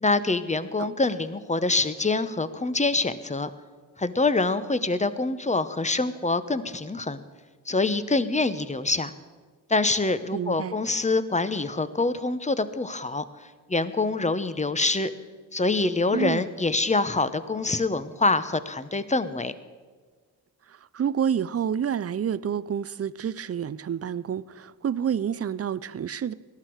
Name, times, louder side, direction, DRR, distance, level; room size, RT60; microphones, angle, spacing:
voice 1, 0.0-3.5 4.0-7.2 7.7-9.1 9.7-13.2 13.7-15.1 15.5-19.5, left 3 dB, 15° left, 0.9 m, -25 dB
voice 2, 10.3-10.8 16.1-16.4 20.7-26.3, right 8 dB, 35° right, 0.5 m, -28 dB
18.5 x 12.0 x 4.7 m
supercardioid pair, 45°, 42 cm